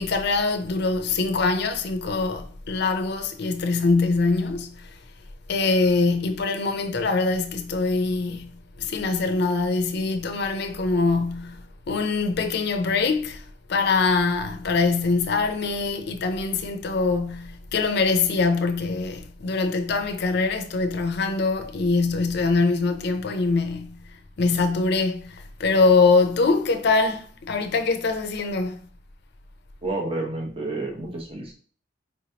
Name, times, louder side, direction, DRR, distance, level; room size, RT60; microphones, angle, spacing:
voice 1, 0.0-4.9 5.5-13.4 13.7-24.0 24.4-28.8, left 3 dB, 60° left, 0.5 m, -23 dB
voice 2, 29.8-31.5, right 2 dB, 30° right, 1.1 m, -30 dB
4.5 x 3.1 x 2.8 m
head